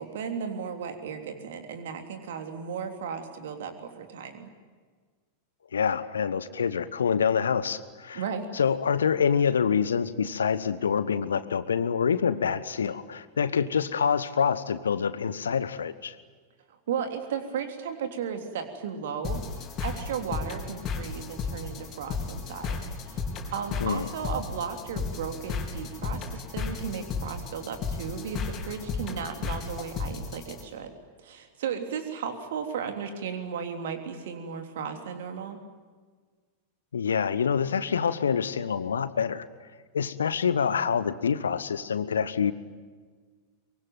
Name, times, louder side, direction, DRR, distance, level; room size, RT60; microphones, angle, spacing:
voice 1, 0.0-4.5 8.1-8.5 16.7-22.8 23.0-23.2 23.5-30.9 31.2-35.6, right 7 dB, 55° right, 6 dB, 3.3 m, -35 dB
voice 2, 5.7-8.2 8.5-16.2 23.8-24.1 36.9-39.5 39.9-42.5, left 7 dB, 70° left, 15 dB, 1.2 m, -26 dB
sound 1, 19.2-30.6, left 4 dB, 30° left, 4.5 m, -34 dB
23.5 x 23.5 x 9.3 m, 1.5 s
figure-of-eight pair, 90°, 0 cm